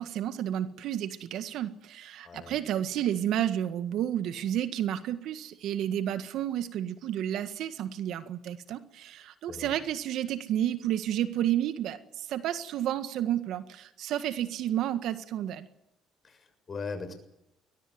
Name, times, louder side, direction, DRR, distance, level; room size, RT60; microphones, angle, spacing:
voice 1, 0.0-15.7, right 11 dB, 75° right, 10 dB, 1.7 m, -31 dB
voice 2, 2.2-2.6 9.5-9.7 16.2-17.1, left 4 dB, 35° left, 8 dB, 6.8 m, -39 dB
22.5 x 19.5 x 9.7 m, 0.84 s
cardioid pair, 90°, 0 cm